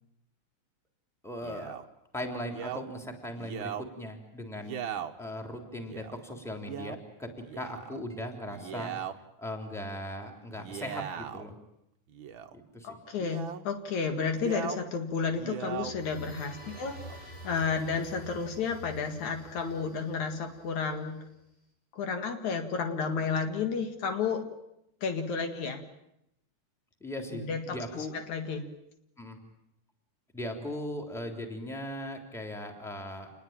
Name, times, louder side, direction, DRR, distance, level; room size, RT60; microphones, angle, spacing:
voice 1, 1.2-1.8 2.1-8.9 9.4-11.6 12.5-13.0 27.0-28.1 29.2-29.4 30.3-33.3, left 1 dB, ahead, 3 dB, 3.1 m, -39 dB
Male speech man speaking, 1.4-1.8 2.5-2.8 3.3-3.8 4.6-5.1 5.8-6.1 6.6-7.0 7.4-8.0 8.5-9.1 10.5-11.5 12.1-12.5 13.2-13.6 14.3-14.8 15.3-15.9 16.6-17.2, right 8 dB, 55° right, 1.5 m, -39 dB
voice 2, 12.8-21.2 21.9-24.5 25.0-25.8 27.3-28.7, left 5 dB, 70° left, 6 dB, 3.2 m, -32 dB
sound 1, 15.6-21.3, right 2 dB, 15° left, 7.2 m, -48 dB
27.5 x 21.0 x 8.9 m, 0.81 s
omnidirectional pair, 3.5 m